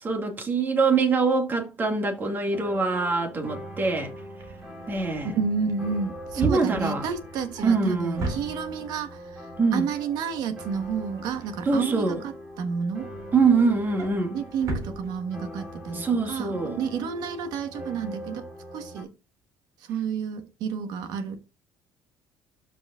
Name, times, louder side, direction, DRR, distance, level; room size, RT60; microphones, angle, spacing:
voice 1, 0.0-4.1 4.9-5.3 6.4-7.1 7.6-8.3 9.6-9.9 11.6-12.3 13.3-14.4 15.9-16.8, right 4 dB, 30° right, 2.0 m, -24 dB
sound 1, 2.5-19.0, equal, 10° right, 4.0 m, -42 dB
Drawer open or close, 4.1-9.2 9.5-9.9 10.1-12.3 12.7-15.7 16.1-16.3 16.5-16.6, right 2 dB, 50° right, 3.0 m, -40 dB
voice 2, 5.2-9.2 9.7-13.1 14.3-18.4 18.7-19.1 19.9-21.4, right 6 dB, 65° right, 1.4 m, -30 dB
12.5 x 5.0 x 2.4 m
cardioid pair, 140°, 7 cm